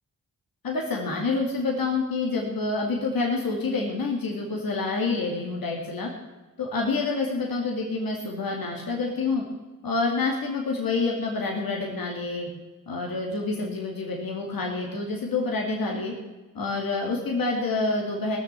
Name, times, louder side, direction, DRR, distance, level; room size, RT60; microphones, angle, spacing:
voice 1, 0.6-6.1 6.6-9.4 9.8-12.5 12.9-16.1 16.5-18.4, left 3 dB, 70° left, -1 dB, 2.4 m, -27 dB
17.0 x 6.9 x 8.2 m, 1.2 s
cardioid pair, 45°, 36 cm